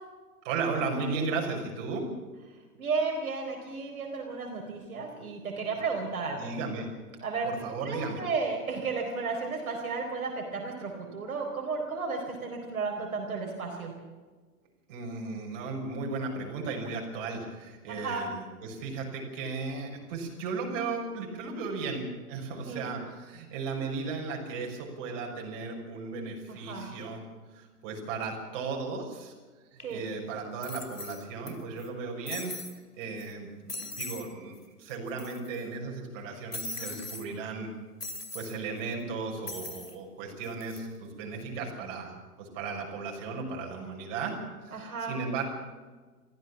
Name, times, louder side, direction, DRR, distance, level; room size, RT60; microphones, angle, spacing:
voice 1, 0.4-2.1 6.4-6.9 7.4-8.2 14.9-27.2 27.5-29.3 29.7-32.5 33.0-37.7 38.3-45.4, right 4 dB, 35° right, 0 dB, 6.2 m, -35 dB
voice 2, 2.7-6.5 7.2-7.5 7.8-13.9 17.9-18.3 22.5-22.9 26.5-26.9 29.8-30.0 36.8-37.0 44.7-45.2, right 4 dB, 65° right, 1 dB, 4.5 m, -33 dB
sound 1, 29.8-29.9 30.6-31.5 31.8-31.9 32.3-32.8 33.2-33.3 33.7-34.3 34.6-34.7 34.9-35.6 36.5-37.3 38.0-38.6 39.5-40.0 40.4-40.8, left 2 dB, 85° left, 2.8 m, -39 dB
23.5 x 15.5 x 7.3 m, 1.4 s
figure-of-eight pair, 115°, 46 cm